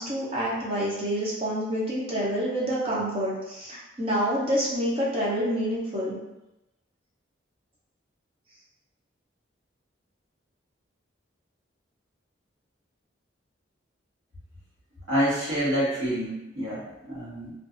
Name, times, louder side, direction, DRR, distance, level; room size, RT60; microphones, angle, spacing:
voice 1, 0.0-6.2, equal, 30° right, -5 dB, 0.6 m, -27 dB
voice 2, 15.1-17.5, equal, 85° right, -9 dB, 1.3 m, -27 dB
2.5 x 2.3 x 2.5 m, 0.96 s
head